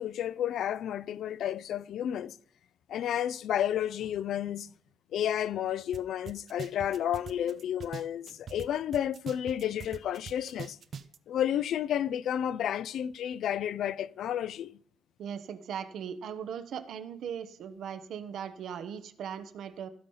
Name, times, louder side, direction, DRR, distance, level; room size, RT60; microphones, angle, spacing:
voice 1, 0.0-2.4 2.9-4.7 5.1-10.8 11.3-14.7, left 10 dB, 75° left, 0.4 m, -31 dB
sound 1, 5.9-6.0 6.3-8.7 8.9-11.2, right 7 dB, 55° right, 0.5 m, -42 dB
voice 2, 15.2-19.9, right 8 dB, 70° right, 0.9 m, -39 dB
15.5 x 5.5 x 5.5 m
cardioid pair, 90°, 0 cm